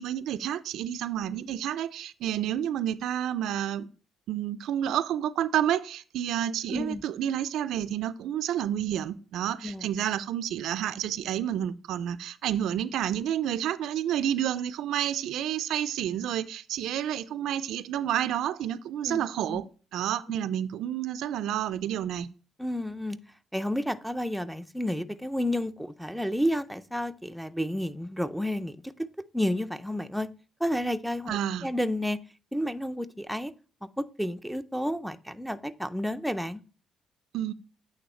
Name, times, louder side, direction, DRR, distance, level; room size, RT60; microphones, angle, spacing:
voice 1, 0.0-3.9 4.3-19.6 19.9-22.3 31.3-31.7 37.3-37.5, right 10 dB, 80° right, 0.3 m, -30 dB
voice 2, 6.7-7.0 9.6-9.9 19.1-19.6 20.3-20.4 22.6-23.2 23.5-29.1 29.3-30.3 30.6-32.2 32.5-33.5 34.0-36.6, equal, ahead, 0.4 m, -31 dB
8.7 x 3.2 x 4.2 m
cardioid pair, 90°, 0 cm